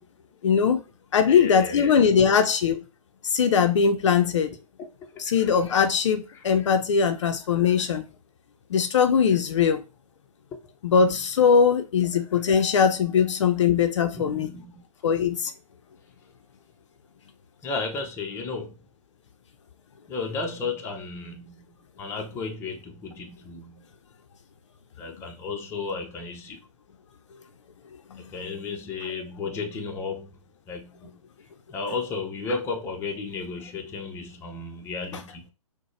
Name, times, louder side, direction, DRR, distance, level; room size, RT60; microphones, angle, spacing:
voice 1, 0.4-0.8 1.1-2.8 3.2-4.6 5.2-8.1 8.7-9.8 10.8-14.5 15.0-15.5 28.1-28.2, left 6 dB, 55° left, 0.5 m, -21 dB
voice 2, 1.3-2.1 5.1-5.5 6.3-6.4 7.5-7.9 11.0-11.1 12.3-12.6 14.1-14.8 17.6-18.7 20.1-21.5 22.0-23.8 25.0-26.6 28.2-30.4 30.7-31.2 31.7-35.4, left 4 dB, 15° left, 0.7 m, -34 dB
6.1 x 2.1 x 3.2 m
figure-of-eight pair, 125°, 19 cm